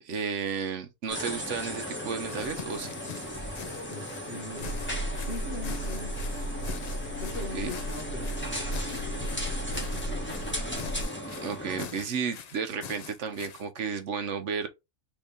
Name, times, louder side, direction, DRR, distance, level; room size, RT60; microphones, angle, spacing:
voice 1, 0.0-2.9 7.5-7.7 11.4-14.7, right 6 dB, 65° right, 1.0 m, -33 dB
sound 1, 1.1-11.8, equal, 10° left, 1.5 m, -37 dB
sound 2, 2.3-13.6, left 7 dB, 70° left, 0.4 m, -44 dB
voice 2, 3.9-4.8 5.2-6.1 7.2-10.3, left 1 dB, 45° left, 1.7 m, -42 dB
sound 3, 4.6-11.0, equal, 90° left, 1.7 m, -35 dB
4.0 x 3.6 x 3.5 m
omnidirectional pair, 1.4 m